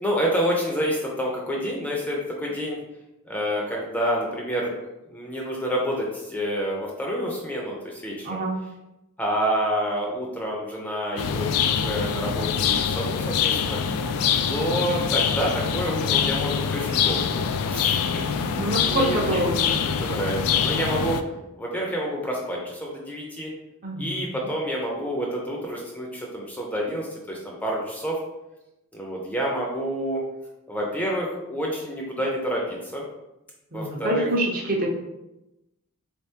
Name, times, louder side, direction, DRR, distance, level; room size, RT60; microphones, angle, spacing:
voice 1, 0.0-2.8 3.3-4.7 5.1-8.4 9.2-13.8 14.5-17.4 17.7-19.4 19.8-21.2 21.6-23.5 24.0-28.2 28.9-30.2 30.7-33.0 33.7-34.3, equal, 5° left, -2 dB, 0.5 m, -28 dB
voice 2, 8.2-8.6 18.5-19.8 23.8-24.4 33.7-34.9, right 1 dB, 40° right, -1 dB, 0.7 m, -26 dB
sound 1, 11.2-21.2, left 7 dB, 85° left, 0.3 m, -24 dB
3.6 x 3.4 x 2.8 m, 0.94 s
head